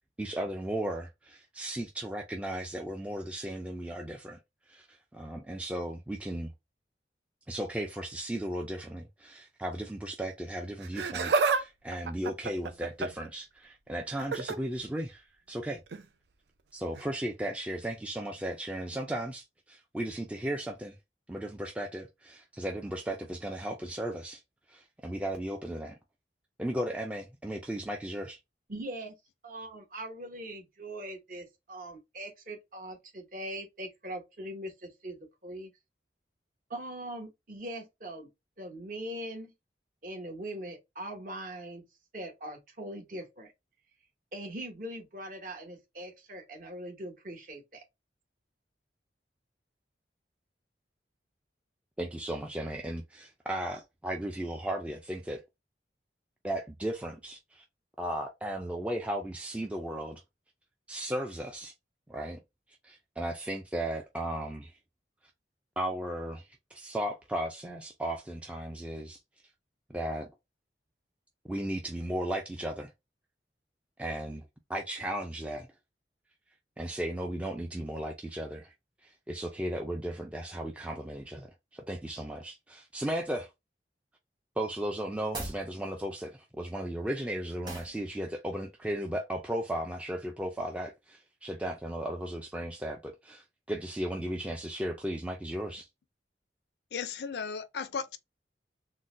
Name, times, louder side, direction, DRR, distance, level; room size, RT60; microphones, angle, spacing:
voice 1, 0.2-4.4 4.7-6.5 7.5-15.8 16.7-21.0 21.3-24.4 24.7-26.0 26.6-28.4 52.0-55.4 56.4-57.6 58.0-60.2 60.9-61.7 62.1-62.4 62.8-64.7 65.8-69.2 69.9-70.3 71.5-72.9 74.0-74.4 74.7-75.7 76.8-78.7 79.0-83.5 84.6-95.9, right 1 dB, 5° right, 0.3 m, -36 dB
Laughter, 10.8-11.6 11.9-13.3 14.2-14.6 15.9-16.0 17.0-17.1, right 4 dB, 70° right, 0.4 m, -29 dB
voice 2, 28.7-29.2 29.4-35.2 35.4-35.7 36.7-38.3 38.6-39.5 40.0-41.8 42.1-43.5 44.3-47.8, right 1 dB, 50° right, 0.9 m, -41 dB
sound 1, 85.2-85.7 87.6-88.0, right 2 dB, 25° right, 1.0 m, -38 dB
voice 3, 96.9-98.2, left 6 dB, 70° left, 0.4 m, -35 dB
3.8 x 2.1 x 2.5 m
head